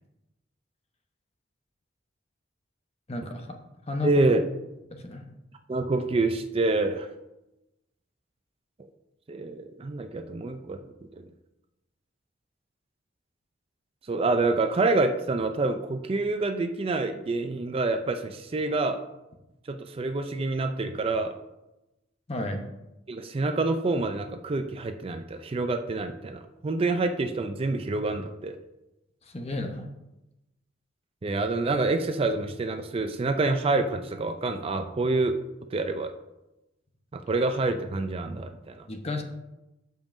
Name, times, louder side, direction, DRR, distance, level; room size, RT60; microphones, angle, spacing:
voice 1, 3.1-3.5 3.9-4.1 4.9-5.2 22.3-22.6 29.3-29.9 38.9-39.2, left 2 dB, 30° left, 4 dB, 0.9 m, -32 dB
voice 2, 4.0-4.4 5.7-7.1 9.3-10.8 11.2-11.3 14.1-19.0 19.7-21.4 23.1-28.6 31.2-35.3 35.7-36.1 37.1-38.8, right 3 dB, 30° right, 7 dB, 0.4 m, -27 dB
12.0 x 5.3 x 2.6 m, 0.96 s
head